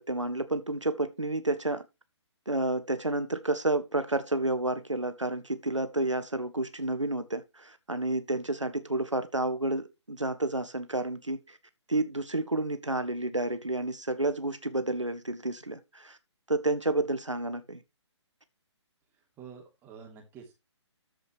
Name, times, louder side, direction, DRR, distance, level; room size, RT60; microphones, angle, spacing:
voice 1, 0.0-1.8 2.5-11.6 11.9-16.2 16.5-17.8, right 2 dB, 85° right, 1.4 m, -30 dB
voice 2, 19.4-20.5, right 6 dB, 15° right, 3.0 m, -48 dB
13.0 x 5.3 x 4.5 m
figure-of-eight pair, 135°, 15 cm